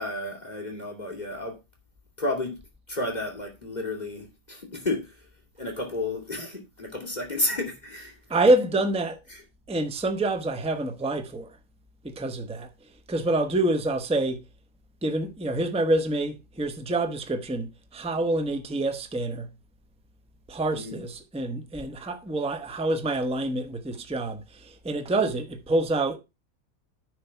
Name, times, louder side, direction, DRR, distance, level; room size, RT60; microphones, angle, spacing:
voice 1, 0.0-1.6 2.2-2.6 2.9-5.0 5.6-8.1 20.7-20.9, left 2 dB, 25° left, 2.7 m, -31 dB
voice 2, 8.3-9.2 9.7-11.6 12.0-12.7 13.1-14.4 15.0-19.5 20.5-26.2, right 2 dB, 5° right, 0.7 m, -27 dB
9.9 x 5.0 x 5.7 m
omnidirectional pair, 1.7 m